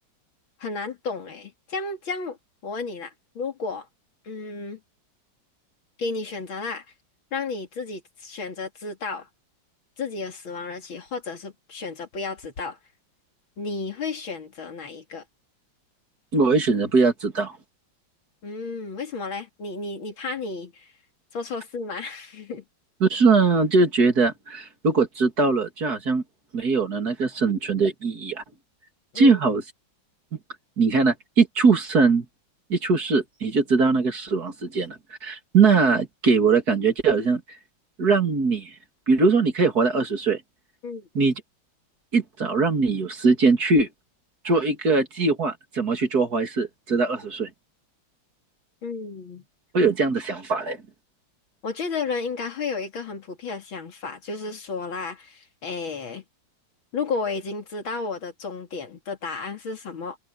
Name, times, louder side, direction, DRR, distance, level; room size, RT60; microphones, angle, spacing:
voice 1, 0.6-2.4 2.6-3.9 4.2-4.8 6.0-6.8 7.3-9.3 10.0-12.8 13.6-15.2 18.4-20.9 21.3-22.6 29.1-29.4 40.8-41.1 48.8-49.4 51.6-56.2 56.9-60.2, left 4 dB, 85° left, 3.5 m, -32 dB
voice 2, 16.3-17.6 23.0-26.2 26.5-28.4 29.1-29.6 30.8-32.2 32.7-37.4 38.0-38.7 39.1-40.4 41.1-41.3 42.1-43.9 44.4-47.5 49.7-50.8, right 4 dB, 50° right, 3.2 m, -21 dB
omnidirectional pair, 2.1 m